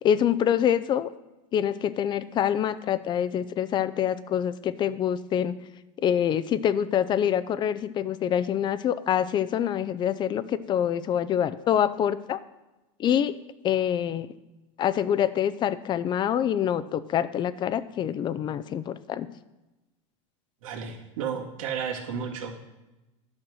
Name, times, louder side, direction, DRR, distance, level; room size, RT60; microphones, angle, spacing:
voice 1, 0.0-1.1 1.5-5.6 6.0-12.4 13.0-13.4 13.6-14.3 14.8-19.3, left 9 dB, 25° left, 15 dB, 0.5 m, -25 dB
voice 2, 20.6-22.6, right 7 dB, 85° right, 0 dB, 2.2 m, -33 dB
11.5 x 5.9 x 6.4 m, 1.0 s
supercardioid pair, 135°, 17 cm